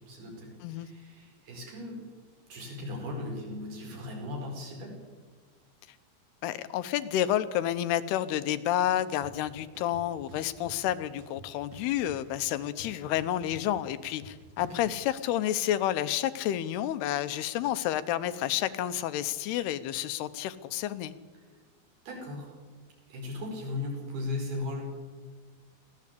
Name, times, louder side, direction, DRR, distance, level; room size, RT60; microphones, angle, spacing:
voice 1, 0.0-2.0 2.5-5.0 14.6-14.9 22.1-22.5 23.1-24.8, left 2 dB, 75° right, 0 dB, 6.8 m, -37 dB
voice 2, 6.4-21.1, left 12 dB, 90° left, 12 dB, 2.9 m, -30 dB
sound 1, 9.2-9.3 9.7-10.7 11.2-12.3 12.6-14.8, equal, 45° right, 3.4 m, -49 dB
22.0 x 16.5 x 8.4 m, 1.5 s
omnidirectional pair, 4.5 m